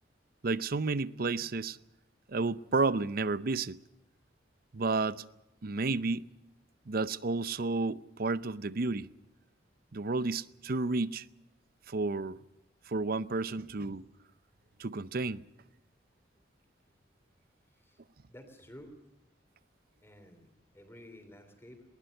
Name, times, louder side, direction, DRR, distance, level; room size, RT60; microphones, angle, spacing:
voice 1, 0.4-1.8 2.3-3.8 4.7-5.2 5.6-6.3 6.9-9.1 9.9-11.3 11.9-12.4 12.9-14.1 14.8-15.4, right 3 dB, 55° right, 0.7 m, -31 dB
voice 2, 18.3-19.0 20.0-21.8, equal, 15° left, 3.4 m, -52 dB
22.0 x 20.0 x 6.6 m
head